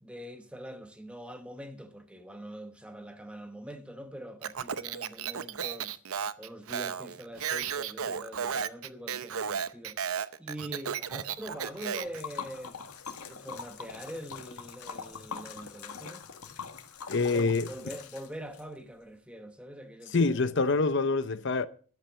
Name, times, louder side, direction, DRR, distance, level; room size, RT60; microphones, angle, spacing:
voice 1, 0.0-12.8 13.3-16.2 17.2-20.4, equal, 5° right, 1.0 m, -44 dB
Speech, 4.4-12.2, right 7 dB, 75° right, 0.7 m, -34 dB
Liquid, 11.5-18.6, left 6 dB, 90° left, 1.8 m, -43 dB
voice 2, 17.1-17.7 20.1-21.7, left 3 dB, 50° left, 0.6 m, -26 dB
12.0 x 8.8 x 7.1 m
head